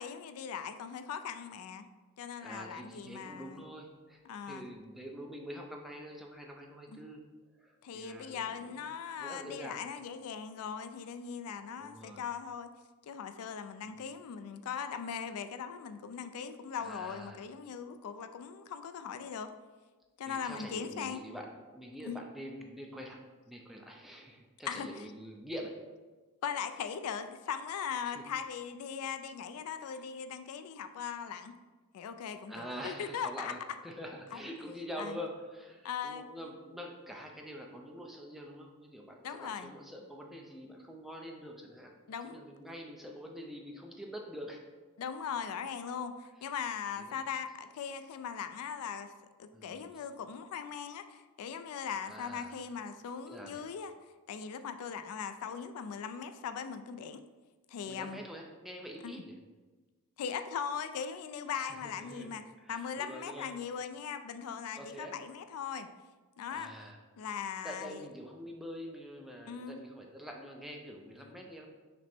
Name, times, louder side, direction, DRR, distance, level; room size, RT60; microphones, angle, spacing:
voice 1, 0.0-1.9 2.2-3.6 4.3-4.7 6.9-7.0 7.8-12.7 13.0-19.5 20.2-21.2 22.0-22.2 24.7-25.0 26.4-31.5 31.9-33.5 34.3-34.5 35.0-35.2 35.8-36.2 39.2-39.7 42.1-42.4 45.0-49.1 49.4-53.9 54.3-57.2 57.7-58.2 59.0-59.1 60.2-62.4 62.7-65.9 66.4-66.7 67.2-68.1 69.5-69.8 71.2-71.3, left 7 dB, 75° left, 9 dB, 0.3 m, -39 dB
voice 2, 2.4-4.2 4.5-7.2 7.6-8.9 9.2-9.8 11.8-12.2 13.8-13.9 16.8-17.4 20.3-23.2 23.5-25.7 28.1-28.2 29.8-29.9 32.5-42.0 42.2-44.6 46.9-47.2 49.5-49.9 52.0-52.5 53.3-53.7 57.9-59.4 61.5-62.3 62.6-63.5 64.8-65.1 66.5-67.3 67.6-71.7, equal, ahead, 0 dB, 0.4 m, -45 dB
5.9 x 2.1 x 4.3 m, 1.3 s
head